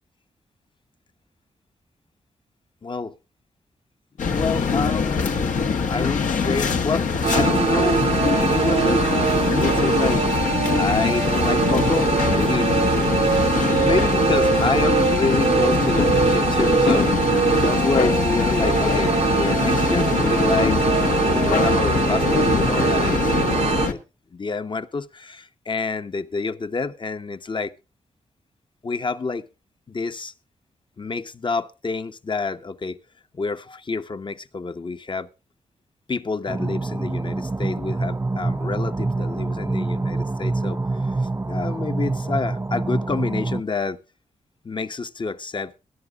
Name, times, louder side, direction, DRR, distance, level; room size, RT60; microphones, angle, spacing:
voice 1, 2.8-3.2 4.2-5.3 5.9-8.0 8.3-9.2 9.5-10.3 10.7-13.0 13.8-17.2 17.5-20.8 21.1-24.0 24.3-27.7 28.8-29.5 29.9-30.3 31.0-33.0 33.3-35.3 36.1-44.0 44.6-45.7, left 4 dB, 40° left, 1.0 m, -28 dB
sound 1, 4.2-23.9, left 5 dB, 75° left, 1.4 m, -23 dB
sound 2, 7.2-23.9, right 6 dB, 55° right, 0.8 m, -22 dB
sound 3, 36.5-43.6, right 2 dB, 20° right, 0.6 m, -26 dB
22.0 x 11.0 x 2.4 m
cardioid pair, 55°, 13 cm